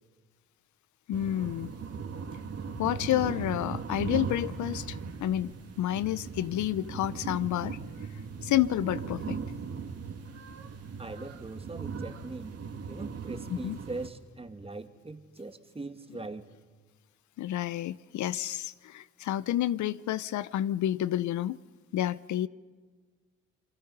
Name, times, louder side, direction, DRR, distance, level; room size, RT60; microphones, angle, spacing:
voice 1, 1.1-1.7 2.8-5.5 5.8-7.8 8.4-9.4 13.5-13.8 17.4-21.6 21.9-22.5, left 13 dB, 75° left, 0.6 m, -30 dB
sound 1, 1.1-14.1, right 5 dB, 55° right, 2.2 m, -38 dB
voice 2, 11.0-12.6 12.9-16.5, right 3 dB, 20° right, 1.8 m, -41 dB
28.0 x 23.5 x 5.5 m
cardioid pair, 90°, 30 cm